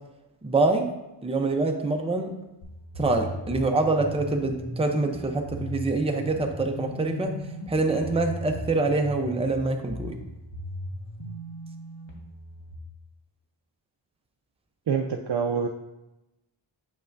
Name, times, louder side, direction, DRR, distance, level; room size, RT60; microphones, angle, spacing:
voice 1, 0.4-0.9 1.2-2.3 3.0-7.4 7.7-10.2, right 3 dB, 15° right, 3 dB, 0.6 m, -25 dB
sound 1, 2.6-12.7, left 1 dB, 65° left, 1.4 m, -37 dB
voice 2, 14.9-15.7, right 6 dB, 60° right, 2 dB, 0.5 m, -26 dB
7.2 x 5.4 x 2.6 m, 0.96 s
wide cardioid pair, 100°, 48 cm